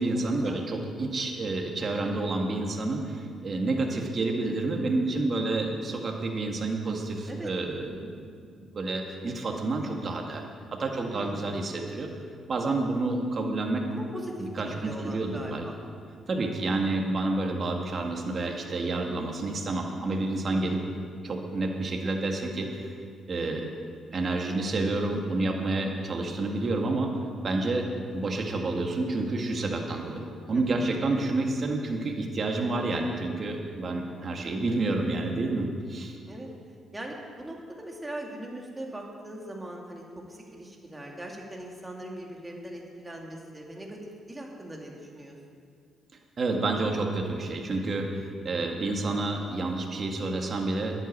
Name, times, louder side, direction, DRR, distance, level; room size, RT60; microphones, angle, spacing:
voice 1, 0.0-8.2 8.6-10.5 10.8-12.1 12.5-13.9 14.4-15.7 16.3-20.8 21.2-22.9 23.3-23.7 24.1-27.1 27.4-36.2 46.4-51.0, right 2 dB, 45° right, 2 dB, 2.0 m, -29 dB
voice 2, 11.1-11.5 13.9-15.8 20.5-20.9 30.5-30.8 36.3-36.5 36.9-45.4 48.5-48.7, right 1 dB, 15° right, -1 dB, 2.4 m, -40 dB
11.0 x 8.5 x 8.8 m, 2.2 s
cardioid pair, 90°, 0 cm